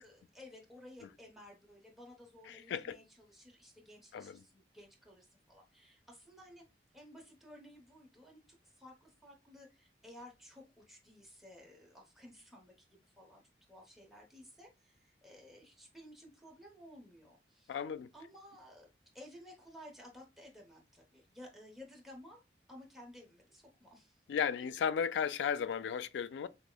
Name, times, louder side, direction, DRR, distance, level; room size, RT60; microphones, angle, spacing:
voice 1, 0.0-6.6 6.9-13.4 13.7-17.8 18.1-18.9 19.1-22.4 22.7-24.3, left 1 dB, ahead, 0.9 m, -55 dB
voice 2, 2.5-3.0 4.1-4.4 17.7-18.1 24.3-26.5, left 7 dB, 90° left, 0.3 m, -35 dB
6.1 x 2.1 x 2.3 m
head